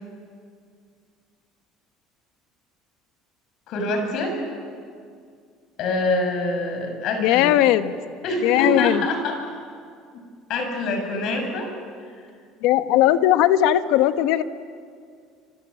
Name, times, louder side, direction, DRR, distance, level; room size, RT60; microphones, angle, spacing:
voice 1, 3.7-4.4 5.8-7.5 8.2-9.4 10.1-10.2 10.5-11.7, left 2 dB, 55° left, 4 dB, 7.5 m, -25 dB
voice 2, 7.2-8.0 8.4-9.0 12.6-14.4, left 13 dB, 75° left, 10 dB, 1.2 m, -18 dB
27.5 x 27.0 x 7.7 m, 2.2 s
cardioid pair, 140°, 0 cm